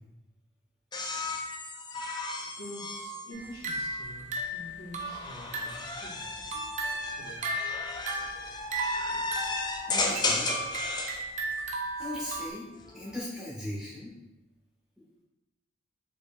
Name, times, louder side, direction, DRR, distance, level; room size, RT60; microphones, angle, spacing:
sound 1, 0.9-4.2 5.0-11.2 12.7-13.2, left 3 dB, 20° left, 0.5 m, -34 dB
voice 1, 2.6-6.3 7.1-7.5, equal, 45° left, -5 dB, 1.1 m, -46 dB
sound 2, 3.3-5.9 6.3-12.5, right 2 dB, 35° right, 0.5 m, -35 dB
voice 2, 9.9-10.5 12.0-12.7 12.9-14.1 15.0-15.2, left 1 dB, 5° right, -7 dB, 1.3 m, -38 dB
5.2 x 4.4 x 2.3 m, 1.0 s
head